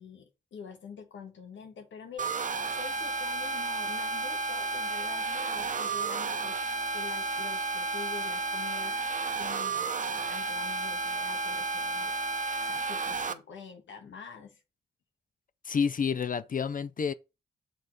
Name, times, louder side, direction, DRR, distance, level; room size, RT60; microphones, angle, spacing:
voice 1, 0.0-12.1 12.6-14.6, left 6 dB, 75° left, 1.6 m, -46 dB
sound 1, 2.2-13.3, right 3 dB, 40° right, 0.8 m, -32 dB
voice 2, 15.6-17.1, left 6 dB, 45° left, 0.5 m, -29 dB
6.3 x 4.0 x 5.0 m
cardioid pair, 65°, 19 cm